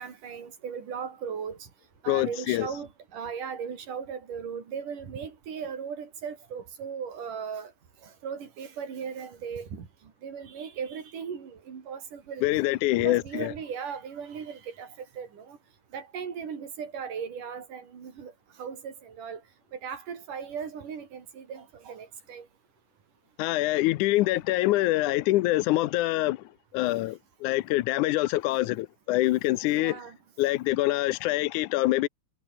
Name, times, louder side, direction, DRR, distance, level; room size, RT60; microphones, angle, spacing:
voice 1, 0.0-1.6 2.0-7.7 8.0-9.9 10.2-12.5 13.0-15.6 15.9-18.3 18.6-19.4 19.7-22.5 29.8-30.2, right 7 dB, 80° right, 5.0 m, -37 dB
voice 2, 2.1-2.7 12.4-13.5 23.4-30.0 30.4-32.1, left 17 dB, 80° left, 2.1 m, -25 dB
omnidirectional pair, 3.6 m